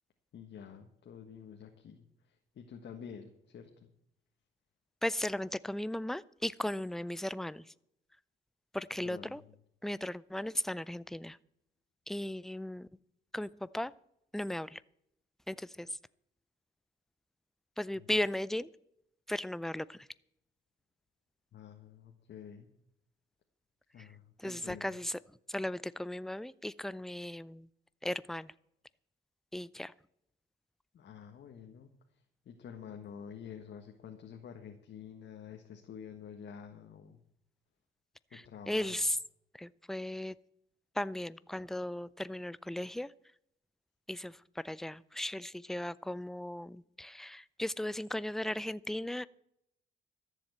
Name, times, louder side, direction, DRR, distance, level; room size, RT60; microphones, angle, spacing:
voice 1, 0.3-3.9 9.0-9.5 17.9-18.1 21.5-22.7 23.9-25.0 30.9-31.9 32.4-37.2 38.3-39.1, left 7 dB, 60° left, 3 dB, 1.5 m, -49 dB
voice 2, 5.0-7.6 8.7-9.4 9.8-11.4 12.1-12.9 13.3-13.9 14.3-14.8 15.5-15.9 17.8-18.7 19.3-20.1 24.4-25.2 25.5-27.7 28.0-28.5 29.5-29.9 38.3-39.2 39.6-40.3 41.0-43.1 44.1-44.4 44.6-49.3, left 1 dB, ahead, 17 dB, 0.4 m, -36 dB
13.5 x 7.4 x 8.0 m, 0.77 s
cardioid pair, 90°, 20 cm